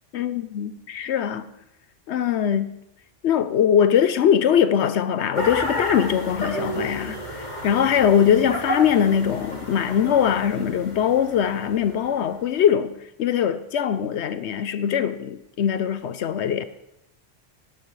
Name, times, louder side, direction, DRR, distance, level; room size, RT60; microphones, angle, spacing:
voice 1, 0.1-1.5 2.1-2.8 3.2-16.6, left 8 dB, 70° left, 0.9 m, -22 dB
sound 1, 5.3-12.3, left 1 dB, 35° left, 2.4 m, -31 dB
19.0 x 11.5 x 3.2 m
omnidirectional pair, 1.2 m